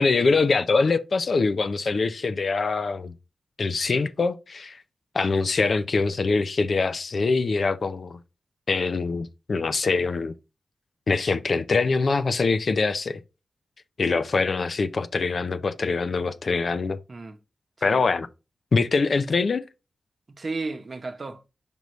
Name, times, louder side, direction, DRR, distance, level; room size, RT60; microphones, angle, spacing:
voice 1, 0.0-3.1 3.6-4.8 5.1-8.2 8.7-10.3 11.1-13.2 14.0-17.0 17.8-18.3 18.7-19.6, left 4 dB, 60° left, 0.5 m, -24 dB
voice 2, 20.3-21.5, right 3 dB, 45° right, 0.9 m, -34 dB
7.8 x 5.3 x 3.1 m
wide cardioid pair, 115°, 0 cm